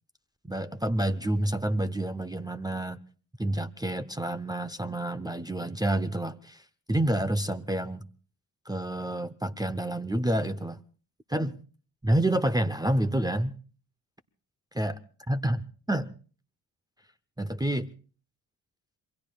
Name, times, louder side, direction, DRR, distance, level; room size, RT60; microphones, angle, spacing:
voice 1, 0.4-3.0 3.4-8.0 8.7-10.8 11.3-11.6 12.0-13.6 14.7-15.0 15.3-16.1 17.4-17.9, right 1 dB, 10° right, 0.7 m, -28 dB
27.0 x 21.5 x 2.3 m
supercardioid pair, 50°, 42 cm